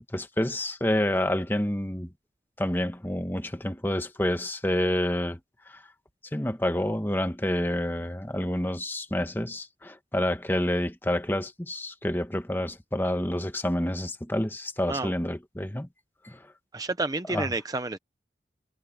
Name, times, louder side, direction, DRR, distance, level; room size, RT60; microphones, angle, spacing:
voice 1, 0.0-2.1 2.6-5.4 5.7-5.8 6.3-15.9 16.2-16.4 17.3-17.5, left 1 dB, 10° left, 1.2 m, -28 dB
voice 2, 16.7-18.0, right 2 dB, 20° right, 0.7 m, -30 dB
head